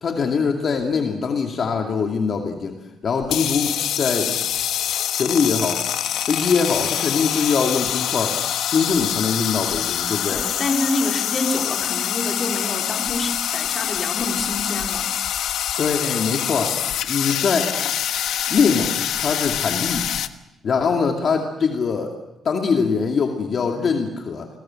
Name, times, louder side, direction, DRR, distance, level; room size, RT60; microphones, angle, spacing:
voice 1, 0.0-2.8 3.0-4.4 5.1-5.9 6.3-8.4 8.7-10.4 15.8-16.8 17.1-17.8 18.5-20.0 20.6-22.1 22.4-24.5, left 5 dB, 45° left, 3 dB, 2.5 m, -22 dB
sound 1, 3.2-20.3, left 10 dB, 85° left, 1.2 m, -25 dB
voice 2, 10.3-15.1, left 2 dB, 30° left, 3 dB, 3.7 m, -27 dB
28.5 x 20.5 x 7.7 m, 0.98 s
cardioid pair, 135°, 0 cm